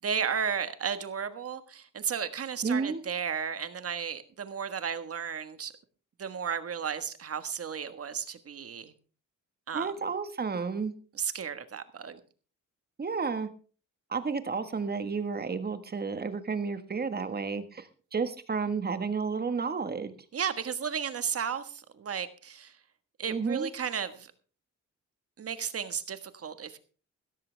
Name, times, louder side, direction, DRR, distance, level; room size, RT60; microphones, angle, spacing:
voice 1, 0.0-5.7 6.2-8.9 9.7-9.9 11.2-12.2 20.3-22.7 23.2-24.3 25.4-26.8, right 7 dB, 50° right, 11 dB, 1.5 m, -34 dB
voice 2, 2.6-3.0 9.7-10.9 13.0-13.5 14.1-20.1 23.3-23.7, right 5 dB, 30° right, 10 dB, 1.5 m, -31 dB
16.5 x 14.0 x 3.4 m, 0.38 s
wide cardioid pair, 135°, 30 cm